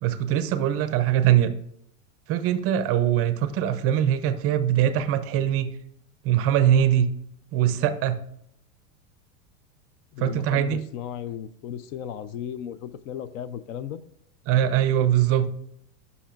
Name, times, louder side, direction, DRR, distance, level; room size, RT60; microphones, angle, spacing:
voice 1, 0.0-1.5 2.3-5.7 6.2-7.1 7.5-8.2 10.2-10.8 14.5-15.5, right 10 dB, 35° right, 12 dB, 0.4 m, -22 dB
voice 2, 10.1-14.0, left 9 dB, 65° left, 16 dB, 0.6 m, -35 dB
10.0 x 5.5 x 2.4 m, 0.73 s
supercardioid pair, 125°, 43 cm